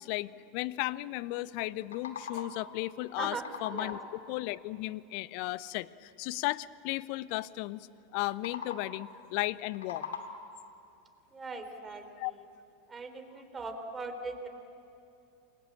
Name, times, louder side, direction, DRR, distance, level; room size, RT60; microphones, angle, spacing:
voice 1, 0.0-4.0 4.3-10.1 12.2-12.3, left 19 dB, 55° left, 19 dB, 0.7 m, -35 dB
sound 1, 1.6-2.7 3.1-4.2 8.2-9.1 9.5-10.6, left 6 dB, 75° left, 2.3 m, -42 dB
voice 2, 3.2-4.0 11.3-12.4 12.9-14.5, right 3 dB, 20° right, 6 dB, 3.5 m, -40 dB
28.0 x 22.0 x 8.8 m, 2.8 s
figure-of-eight pair, 85°, 0 cm